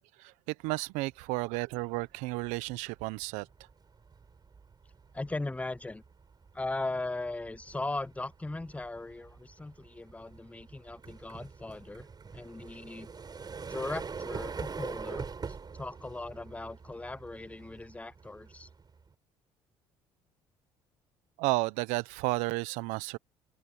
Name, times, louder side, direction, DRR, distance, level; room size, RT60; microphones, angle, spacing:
voice 1, 0.0-3.5 21.4-23.2, right 23 dB, 80° right, 0.9 m, -32 dB
sound 1, 1.7-2.0 2.4-19.1, right 5 dB, 35° right, 5.3 m, -44 dB
voice 2, 5.1-6.0 6.5-12.1 12.3-13.1 13.7-15.3 15.7-18.7, left 2 dB, 10° left, 0.6 m, -38 dB
open air
hypercardioid pair, 65°, 12 cm